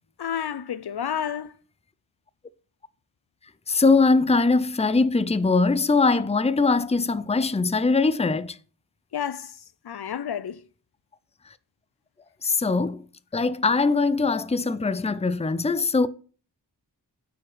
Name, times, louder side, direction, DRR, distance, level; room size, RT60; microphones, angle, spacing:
voice 1, 0.2-1.5 9.1-9.5 9.9-10.6, left 8 dB, 65° left, 0.7 m, -30 dB
voice 2, 3.7-8.6 12.4-13.0 13.3-16.1, left 3 dB, 15° left, 0.6 m, -21 dB
9.0 x 5.1 x 6.2 m
wide cardioid pair, 70°, 41 cm